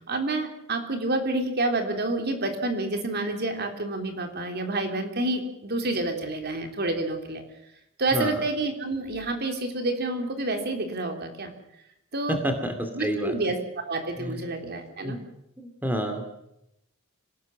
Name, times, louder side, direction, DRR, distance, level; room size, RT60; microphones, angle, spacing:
voice 1, 0.1-7.4 8.0-11.5 12.1-12.4 12.9-13.6 13.9-15.2, right 2 dB, 50° right, 5 dB, 3.4 m, -28 dB
voice 2, 8.1-8.4 12.3-13.3 14.2-14.4 15.0-15.2 15.6-16.3, equal, 10° right, 6 dB, 2.5 m, -29 dB
26.5 x 17.5 x 7.4 m, 0.81 s
head